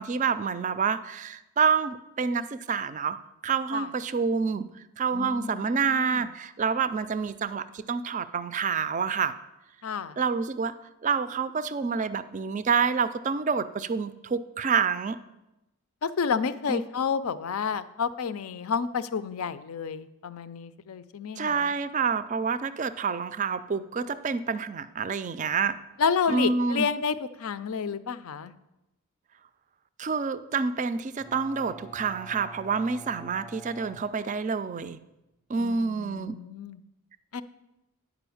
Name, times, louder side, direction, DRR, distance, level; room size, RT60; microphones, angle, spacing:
voice 1, 0.0-3.2 3.4-9.3 10.2-10.8 11.0-15.2 16.7-16.8 21.4-25.8 26.3-26.9 30.0-35.0 35.5-36.3, right 5 dB, 35° right, 14 dB, 0.3 m, -28 dB
voice 2, 5.1-6.2 9.8-10.2 16.0-21.7 26.0-28.5 35.6-36.8 37.3-37.4, left 6 dB, 75° left, 14 dB, 0.5 m, -30 dB
Bowed string instrument, 31.2-35.0, right 1 dB, 10° left, 0.6 m, -48 dB
9.8 x 5.0 x 7.0 m, 0.94 s
head